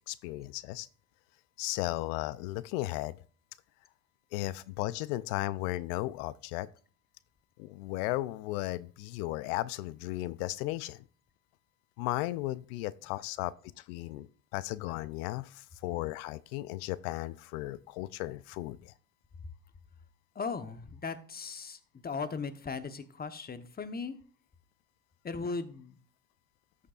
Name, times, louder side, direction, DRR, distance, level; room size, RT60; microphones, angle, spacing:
voice 1, 0.1-0.9 1.6-3.2 4.3-6.7 7.6-11.0 12.0-18.9, left 17 dB, 75° left, 0.6 m, -35 dB
voice 2, 20.3-24.2 25.2-26.0, left 4 dB, 20° left, 1.0 m, -38 dB
13.0 x 6.5 x 2.4 m
hypercardioid pair, 75°, 44 cm